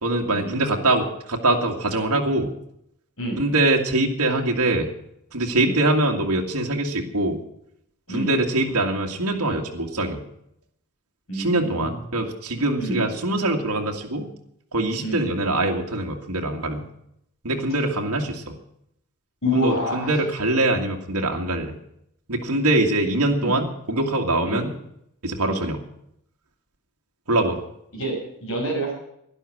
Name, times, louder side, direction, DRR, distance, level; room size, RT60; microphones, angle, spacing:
voice 1, 0.0-2.5 3.4-4.9 5.3-7.4 8.1-10.2 11.3-14.3 14.7-16.8 17.4-18.6 19.5-21.7 22.3-24.7 25.2-25.8 27.3-27.6, right 2 dB, 75° right, 1 dB, 2.1 m, -23 dB
voice 2, 11.3-12.0 12.8-13.0 15.0-15.3 19.4-20.1 23.4-23.6 24.4-24.7 25.5-25.7 27.9-28.9, equal, 60° left, 0 dB, 6.7 m, -27 dB
12.0 x 11.0 x 8.5 m, 0.75 s
head